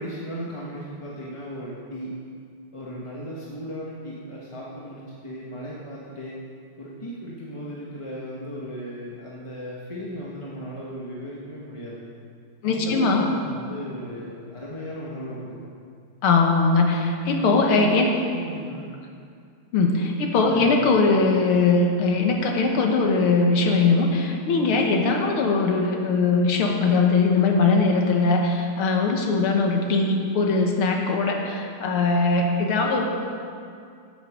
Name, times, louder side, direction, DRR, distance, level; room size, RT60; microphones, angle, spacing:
voice 1, 0.0-2.1 2.7-6.4 6.8-12.1 12.6-15.6 17.4-18.9 20.4-21.0, equal, 20° left, -5 dB, 0.9 m, -36 dB
voice 2, 12.6-13.3 16.2-18.1 19.7-33.1, left 3 dB, 90° left, 2 dB, 2.1 m, -21 dB
11.5 x 7.9 x 6.1 m, 2.3 s
omnidirectional pair, 2.3 m